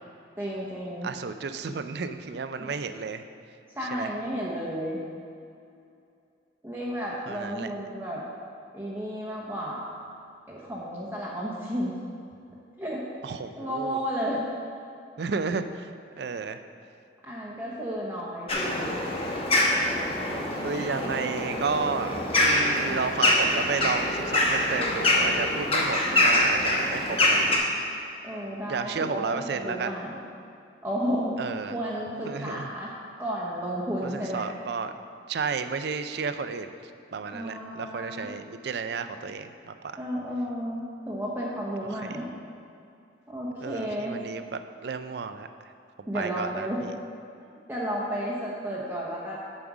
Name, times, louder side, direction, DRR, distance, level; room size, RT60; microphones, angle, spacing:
voice 1, 0.4-1.1 2.6-2.7 3.8-5.0 6.6-8.2 8.7-9.9 10.5-11.9 12.8-13.0 13.6-14.4 17.2-19.0 28.2-30.2 30.8-31.3 31.7-32.9 33.2-34.5 37.3-38.3 40.0-42.3 43.3-44.1 46.1-46.8 47.7-49.3, equal, 10° right, -5 dB, 0.8 m, -32 dB
voice 2, 1.0-3.2 3.9-4.1 7.3-7.7 13.2-14.0 15.2-15.9 16.2-16.6 20.6-27.7 28.7-30.0 31.4-31.8 32.3-32.7 34.0-34.9 35.3-36.8 37.1-39.9 41.9-42.2 43.6-45.5 46.1-46.7, right 5 dB, 60° right, 10 dB, 0.4 m, -32 dB
sound 1, 18.5-27.6, left 1 dB, 30° left, 0.9 m, -24 dB
7.2 x 5.2 x 5.9 m, 2.5 s
head